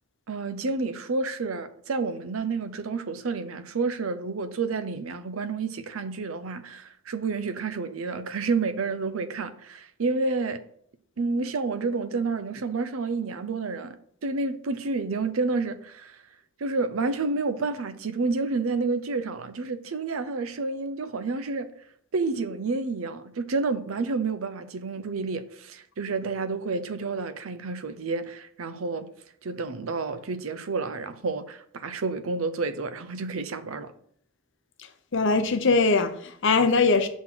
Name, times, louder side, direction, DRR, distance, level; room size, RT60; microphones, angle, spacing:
voice 1, 0.3-10.6 11.2-16.2 16.6-21.7 22.1-29.1 29.4-33.9, right 4 dB, 80° right, 0.6 m, -29 dB
voice 2, 35.1-37.1, left 4 dB, 65° left, 0.7 m, -21 dB
6.2 x 3.8 x 5.9 m
head